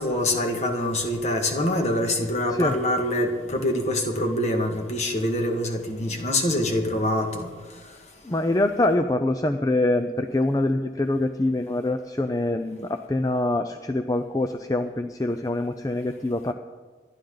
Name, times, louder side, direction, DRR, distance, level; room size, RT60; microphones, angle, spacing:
voice 1, 0.0-7.5, left 1 dB, 40° left, 3 dB, 1.8 m, -25 dB
voice 2, 8.2-16.5, left 1 dB, 20° left, 7 dB, 0.5 m, -24 dB
26.5 x 11.5 x 3.9 m, 1.4 s
head